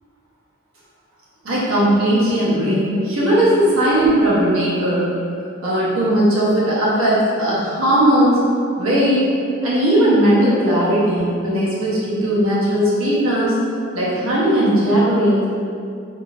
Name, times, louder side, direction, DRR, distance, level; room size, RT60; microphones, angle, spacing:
voice 1, 1.4-5.1 5.6-8.4 8.8-9.3 9.6-13.6 13.9-15.4, right 1 dB, 80° right, -7 dB, 0.9 m, -17 dB
3.5 x 2.7 x 2.4 m, 2.4 s
head